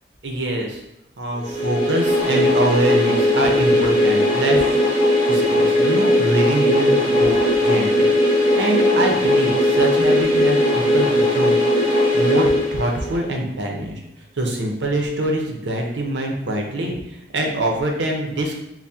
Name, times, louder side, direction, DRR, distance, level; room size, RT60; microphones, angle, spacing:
voice 1, 0.2-0.8 1.2-4.6 4.9-7.4 7.6-8.1 8.5-11.6 12.1-14.0 14.4-18.6, right 1 dB, 85° right, 1 dB, 0.7 m, -24 dB
sound 1, 1.5-13.3, left 1 dB, 25° left, 0.9 m, -18 dB
4.2 x 2.2 x 3.5 m, 0.84 s
head